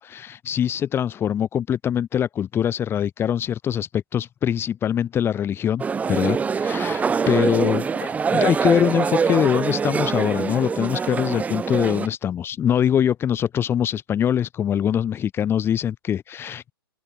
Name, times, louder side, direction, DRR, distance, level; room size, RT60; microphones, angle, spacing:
voice 1, 0.0-5.8 6.1-16.7, left 9 dB, 20° left, 7.8 m, -23 dB
sound 1, 5.8-12.1, right 5 dB, 10° right, 4.0 m, -24 dB
open air
figure-of-eight pair, 120°, 13 cm